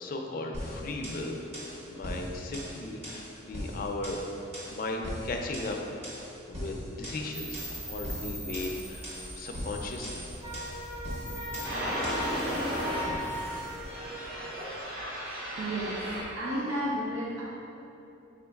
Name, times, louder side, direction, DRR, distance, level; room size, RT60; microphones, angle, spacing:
voice 1, 0.0-4.2 4.7-5.8 6.5-7.6 7.9-9.1 9.4-10.2, left 2 dB, 45° left, 2 dB, 0.4 m, -36 dB
sound 1, 0.5-12.4, equal, 35° right, 1.0 m, -40 dB
sound 2, 7.3-16.2, equal, 50° right, 1.2 m, -36 dB
Wind instrument woodwind instrument, 10.4-14.4, equal, 15° right, 0.7 m, -39 dB
voice 2, 15.6-17.4, equal, 90° right, -7 dB, 0.6 m, -32 dB
5.1 x 3.7 x 2.3 m, 2.8 s
head